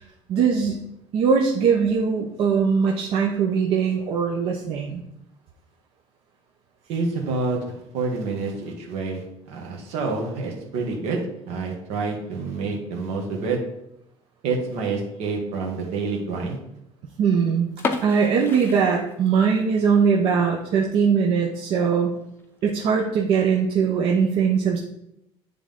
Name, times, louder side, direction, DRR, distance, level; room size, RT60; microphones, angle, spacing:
voice 1, 0.3-0.8 1.1-5.0 17.2-17.7 18.0-22.1 22.6-24.8, right 6 dB, 60° right, -1 dB, 0.8 m, -21 dB
voice 2, 6.9-13.6 14.4-16.6, right 4 dB, 75° right, 1 dB, 1.7 m, -28 dB
sound 1, 17.7-19.6 20.0-20.1 20.6-20.8 21.2-21.3 21.5-21.6 22.4-22.7, left 4 dB, 20° left, 0.5 m, -31 dB
9.7 x 3.7 x 3.6 m, 0.79 s
cardioid pair, 165°, 11 cm